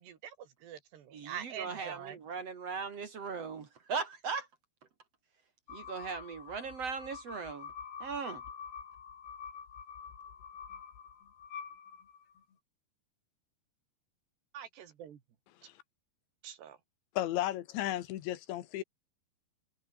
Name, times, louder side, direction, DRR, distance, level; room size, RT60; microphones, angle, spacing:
voice 1, 0.0-2.2 14.5-15.2 16.4-16.8, right 9 dB, 70° right, 4.5 m, -45 dB
voice 2, 1.1-4.5 5.7-7.7 8.0-8.4, right 5 dB, 45° right, 2.3 m, -38 dB
sound 1, 5.7-12.4, left 7 dB, 70° left, 5.9 m, -47 dB
voice 3, 17.2-18.8, left 14 dB, 90° left, 3.8 m, -34 dB
omnidirectional pair, 5.1 m